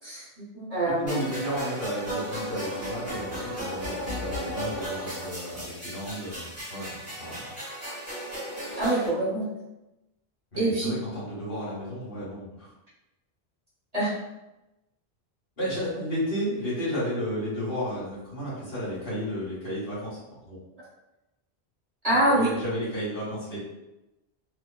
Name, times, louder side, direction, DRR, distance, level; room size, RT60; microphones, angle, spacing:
voice 1, 0.0-1.2 8.8-9.5 10.6-10.9 13.9-14.1 22.0-22.5, right 1 dB, 40° right, -10 dB, 1.0 m, -25 dB
voice 2, 1.0-6.9 7.2-7.5 10.5-12.7 15.6-20.2 20.4-20.6 22.1-23.6, equal, 55° left, -9 dB, 1.3 m, -33 dB
sound 1, 1.1-9.1, equal, 15° right, 1.0 m, -35 dB
2.9 x 2.1 x 2.2 m, 0.96 s
omnidirectional pair, 1.1 m